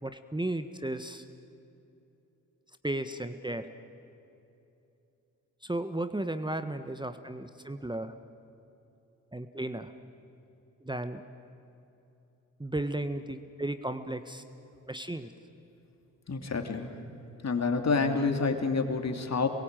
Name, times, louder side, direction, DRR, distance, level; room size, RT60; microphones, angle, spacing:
voice 1, 0.0-1.2 2.8-3.7 5.6-8.1 9.3-9.9 10.8-11.2 12.6-14.4 14.9-15.3, right 1 dB, 10° right, 10 dB, 1.3 m, -34 dB
voice 2, 16.3-17.0 17.4-19.5, left 4 dB, 45° left, 5 dB, 3.1 m, -28 dB
27.0 x 22.5 x 9.1 m, 2.9 s
hypercardioid pair, 45°, 37 cm